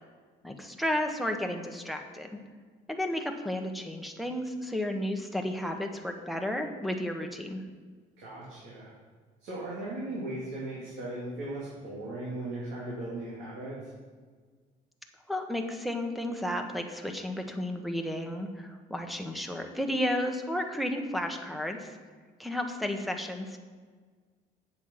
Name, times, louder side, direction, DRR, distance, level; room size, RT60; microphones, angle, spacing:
voice 1, 0.4-2.3 2.9-7.6 15.3-22.0 22.4-23.6, left 1 dB, ahead, 3 dB, 1.1 m, -32 dB
voice 2, 8.2-8.9 9.4-13.8, right 1 dB, 85° right, -8 dB, 3.1 m, -37 dB
8.6 x 7.3 x 5.7 m, 1.5 s
cardioid pair, 110°, 17 cm